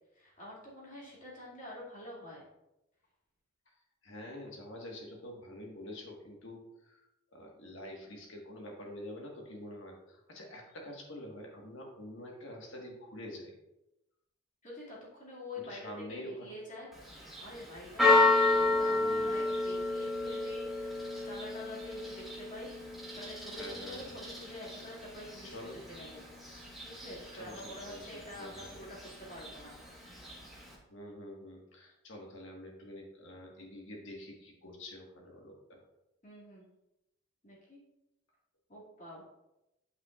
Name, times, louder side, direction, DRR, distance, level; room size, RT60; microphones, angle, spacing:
voice 1, 0.1-2.5 14.6-22.7 23.1-26.2 26.8-29.8 36.2-36.6 37.4-37.8 38.7-39.2, left 1 dB, 40° left, -6 dB, 2.3 m, -47 dB
voice 2, 4.0-7.0 7.3-13.6 15.6-16.5 18.7-19.5 23.6-24.1 25.4-25.8 27.4-28.7 30.9-35.8, left 1 dB, 70° left, 0 dB, 1.5 m, -46 dB
Church bell, 16.9-30.7, left 2 dB, ahead, 1.3 m, -32 dB
8.5 x 5.7 x 2.4 m, 0.92 s
head